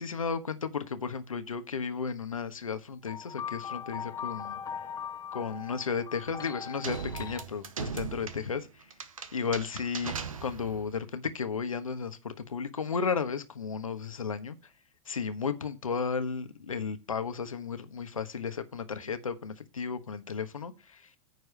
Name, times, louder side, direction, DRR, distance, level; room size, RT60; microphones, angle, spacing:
voice 1, 0.0-4.6 5.3-8.7 9.3-10.1 10.4-14.6 15.1-21.2, left 5 dB, 85° left, 1.2 m, -34 dB
sound 1, 3.1-7.4, left 7 dB, 20° left, 0.7 m, -40 dB
sound 2, 6.8-10.9, right 6 dB, 85° right, 1.1 m, -39 dB
9.5 x 4.8 x 6.9 m
hypercardioid pair, 100°, 17 cm